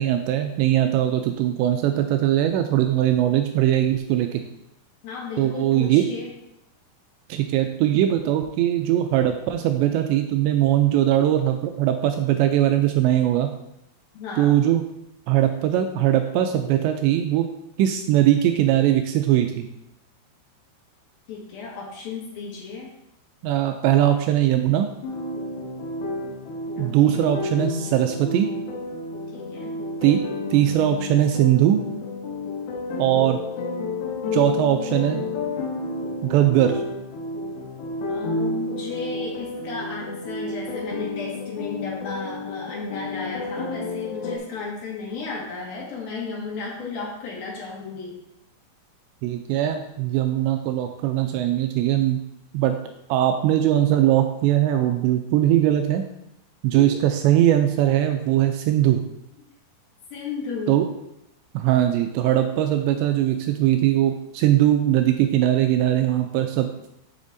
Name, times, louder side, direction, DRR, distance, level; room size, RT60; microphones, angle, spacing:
voice 1, 0.0-4.4 5.4-6.1 7.3-13.5 14.4-14.9 15.3-17.5 17.8-19.7 23.4-24.9 26.8-28.5 30.0-30.2 30.5-31.8 33.0-33.4 34.3-35.2 36.2-36.8 49.2-52.2 52.5-52.8 53.1-56.0 56.6-59.0 60.7-60.9 61.5-66.7, right 12 dB, 85° right, 6 dB, 2.5 m, -20 dB
voice 2, 5.0-6.3 14.1-14.6 21.3-22.9 26.8-27.2 29.3-29.7 38.1-48.2 60.1-60.9, left 4 dB, 60° left, -3 dB, 3.1 m, -34 dB
sound 1, 25.0-44.4, left 2 dB, 75° left, 2.3 m, -31 dB
8.5 x 8.1 x 2.7 m, 0.83 s
omnidirectional pair, 5.5 m